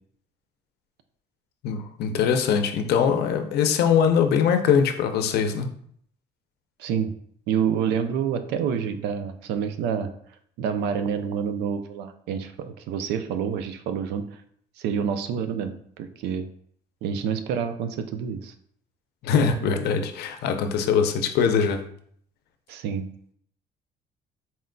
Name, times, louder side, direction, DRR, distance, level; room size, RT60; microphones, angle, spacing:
voice 1, 1.6-5.7 19.2-21.8, left 7 dB, 70° left, 7 dB, 0.6 m, -22 dB
voice 2, 6.8-7.1 7.5-10.1 10.6-14.3 14.8-16.5 17.0-18.5 22.7-23.1, right 7 dB, 85° right, 9 dB, 0.5 m, -28 dB
4.2 x 3.7 x 2.2 m, 0.63 s
cardioid pair, 110°, 17 cm